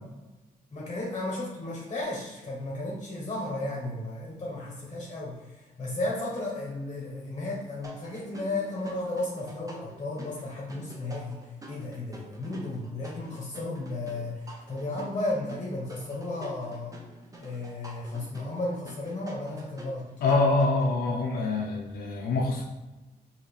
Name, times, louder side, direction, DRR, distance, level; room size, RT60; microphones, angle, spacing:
voice 1, 0.7-16.9 17.4-20.1, left 2 dB, 30° left, -3 dB, 1.1 m, -34 dB
sound 1, 7.8-20.9, right 1 dB, 25° right, 0.7 m, -48 dB
voice 2, 20.2-22.6, left 3 dB, 85° left, -2 dB, 0.6 m, -25 dB
4.8 x 2.9 x 3.3 m, 1.1 s
cardioid pair, 110°, 15 cm